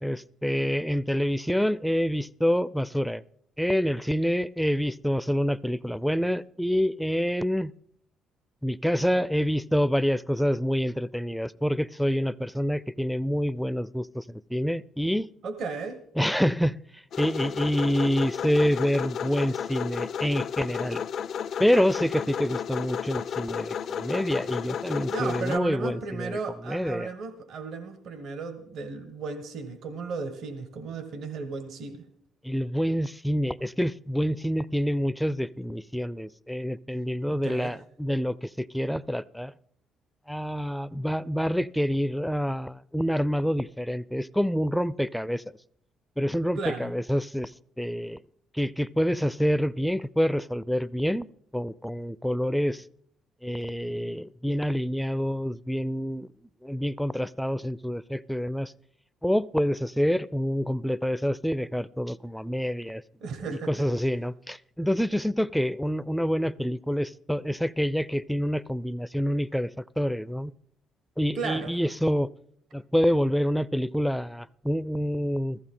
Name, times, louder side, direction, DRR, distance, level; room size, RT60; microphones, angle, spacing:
voice 1, 0.0-3.2 3.6-7.7 8.6-15.3 16.2-21.0 21.6-26.4 26.6-27.1 32.4-39.5 40.3-45.4 46.2-47.5 47.8-48.2 48.5-51.3 51.5-52.8 53.4-56.3 56.6-58.7 59.2-63.0 63.5-70.5 71.2-72.3 72.7-75.6, equal, ahead, 0.4 m, -27 dB
voice 2, 15.4-16.0 25.1-32.0 37.3-37.7 46.6-46.9 63.2-63.9 71.3-71.7, right 4 dB, 70° right, 1.4 m, -35 dB
sound 1, 17.1-25.6, left 8 dB, 65° left, 0.4 m, -33 dB
15.0 x 14.5 x 3.8 m
supercardioid pair, 75°, 0 cm